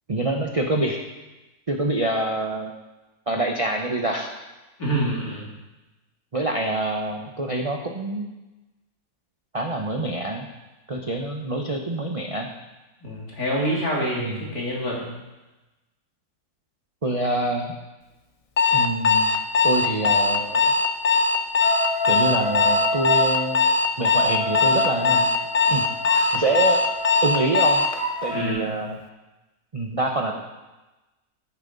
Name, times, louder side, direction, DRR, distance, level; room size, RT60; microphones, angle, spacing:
voice 1, 0.1-1.0 1.7-2.7 3.3-4.3 6.3-8.3 9.5-10.5 10.9-12.5 14.2-14.4 17.0-17.7 18.7-19.3 19.6-20.7 22.1-23.7 24.0-25.3 25.7-25.9 26.3-26.8 27.2-27.9 28.2-29.0 29.7-30.4, right 2 dB, 30° right, 2 dB, 0.8 m, -26 dB
voice 2, 4.8-5.5 13.0-15.1 28.3-28.9, equal, 65° left, -4 dB, 3.4 m, -27 dB
Alarm, 18.6-28.0, left 4 dB, 35° left, 0.5 m, -20 dB
sound 1, 21.6-23.4 24.0-28.5, left 1 dB, 90° right, 5.2 m, -29 dB
13.0 x 10.0 x 4.0 m, 1.1 s
omnidirectional pair, 1.7 m